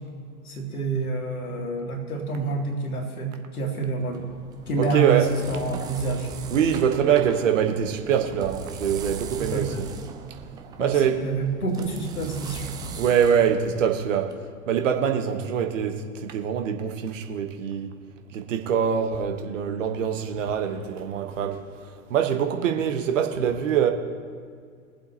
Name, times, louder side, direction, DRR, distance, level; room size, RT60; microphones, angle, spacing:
voice 1, 0.4-4.2 4.7-6.3 9.4-9.8 10.8-12.7, right 3 dB, 75° left, 2.2 m, -28 dB
sound 1, 4.0-14.3, right 7 dB, 10° right, 0.4 m, -40 dB
voice 2, 4.8-5.3 6.5-9.7 10.8-11.2 12.9-14.3 14.7-17.9 18.3-21.6 22.1-23.9, right 8 dB, 60° right, 1.2 m, -24 dB
21.5 x 7.7 x 2.9 m
figure-of-eight pair, 95°, 44 cm